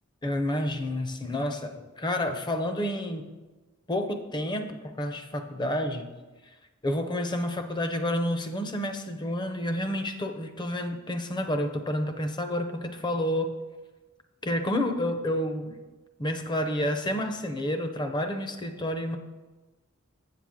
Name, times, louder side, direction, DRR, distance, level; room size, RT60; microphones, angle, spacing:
voice 1, 0.2-3.3 3.9-6.1 6.8-13.5 14.4-15.8 16.2-19.2, left 1 dB, 20° left, 7 dB, 0.6 m, -29 dB
8.0 x 7.5 x 3.7 m, 1.2 s
head